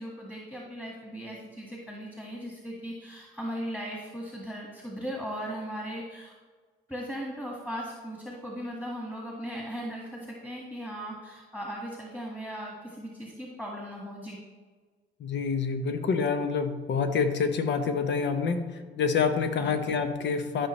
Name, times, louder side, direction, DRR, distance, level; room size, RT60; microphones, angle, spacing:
voice 1, 0.0-6.3 6.9-14.4 19.6-19.8, equal, 5° left, -2 dB, 1.8 m, -38 dB
voice 2, 15.2-20.7, left 5 dB, 65° left, 8 dB, 1.0 m, -27 dB
12.5 x 5.6 x 3.2 m, 1.5 s
cardioid pair, 90°, 20 cm